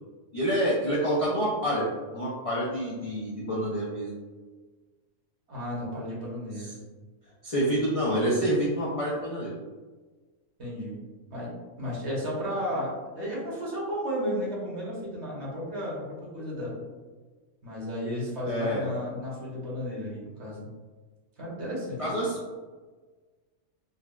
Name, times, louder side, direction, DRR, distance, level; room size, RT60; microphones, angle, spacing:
voice 1, 0.3-1.9 2.1-4.1 6.6-6.7 7.4-9.5 18.4-18.9 22.0-22.6, equal, 65° left, -6 dB, 0.3 m, -27 dB
voice 2, 5.5-6.8 10.6-11.0 11.3-11.5 11.8-16.8 17.6-20.7 21.4-22.2, equal, 55° right, -5 dB, 1.2 m, -33 dB
4.0 x 2.2 x 2.3 m, 1.4 s
omnidirectional pair, 1.4 m